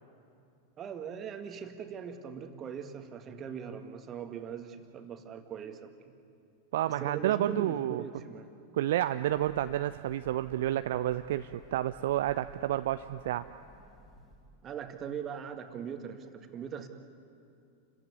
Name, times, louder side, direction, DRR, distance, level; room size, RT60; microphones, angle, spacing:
voice 1, 0.8-6.1 7.0-8.5 14.6-16.9, right 7 dB, 30° right, 7 dB, 1.9 m, -40 dB
voice 2, 6.7-8.0 8.7-13.4, right 13 dB, 55° right, 11 dB, 0.5 m, -30 dB
Train, 8.9-14.7, right 1 dB, 25° left, 5.6 m, -57 dB
29.0 x 15.0 x 9.8 m, 2.6 s
figure-of-eight pair, 90°, 0 cm